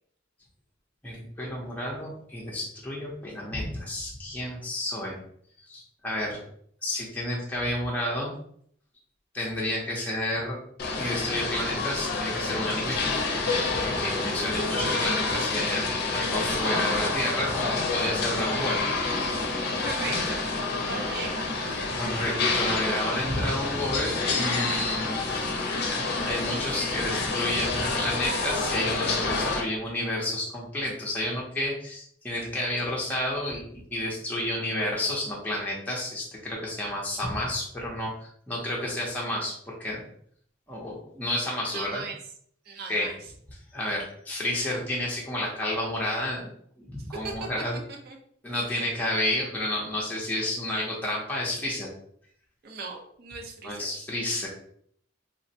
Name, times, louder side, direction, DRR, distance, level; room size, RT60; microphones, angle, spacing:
voice 1, 1.0-5.2 5.7-6.4 6.8-8.3 9.3-10.6 11.0-13.0 13.4-15.8 16.1-18.8 22.0-25.2 25.8-26.0 26.2-40.0 40.7-42.0 42.9-43.1 43.7-46.5 46.8-47.8 48.4-51.9 53.6-54.5, left 1 dB, 10° left, -5 dB, 0.5 m, -30 dB
sound 1, 10.8-29.6, left 3 dB, 55° left, 0.5 m, -28 dB
voice 2, 19.8-20.4 20.8-21.4 41.7-42.2 42.7-43.2 47.2-47.5 48.0-48.2 52.6-53.9, right 4 dB, 50° right, 2 dB, 0.5 m, -37 dB
3.3 x 2.0 x 2.7 m, 0.65 s
head